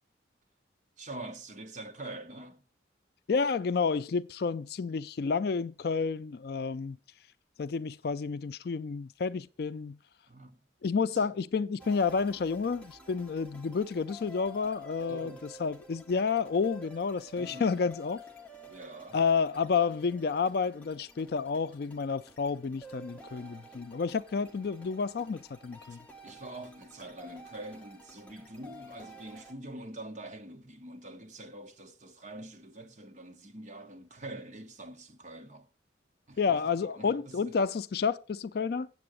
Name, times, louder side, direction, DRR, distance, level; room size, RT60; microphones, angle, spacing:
voice 1, 1.0-2.6 10.3-10.6 11.0-11.3 15.1-15.5 17.3-17.7 18.7-19.2 25.9-35.7 36.3-37.6, right 2 dB, 40° right, 1.1 m, -45 dB
voice 2, 3.3-7.0 7.6-10.0 10.8-18.2 19.1-26.0 36.4-38.9, left 5 dB, 55° left, 0.4 m, -30 dB
sound 1, 11.8-29.5, equal, 5° left, 1.0 m, -51 dB
7.8 x 7.7 x 6.2 m
head